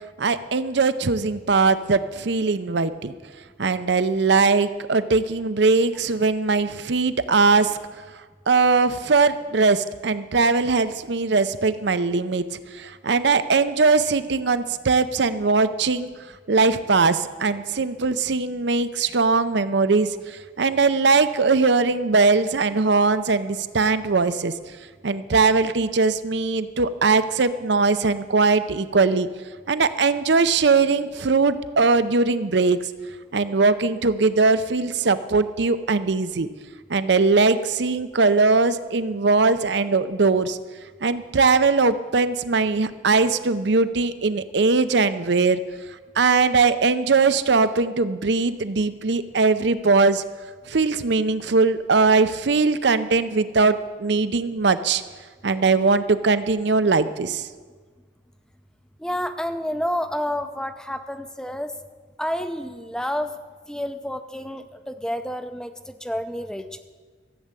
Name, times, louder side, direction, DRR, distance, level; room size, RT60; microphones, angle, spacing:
voice 1, 0.2-3.1 3.6-7.8 8.5-12.5 12.7-16.1 16.5-24.5 25.0-29.3 29.7-32.8 33.3-36.5 36.9-40.6 41.0-45.6 46.2-50.2 50.7-55.0 55.4-57.5, right 4 dB, 60° right, 12 dB, 0.6 m, -20 dB
voice 2, 59.0-61.7 62.2-63.3 63.7-66.8, equal, 5° left, 9 dB, 0.5 m, -29 dB
14.5 x 7.6 x 8.3 m, 1.5 s
head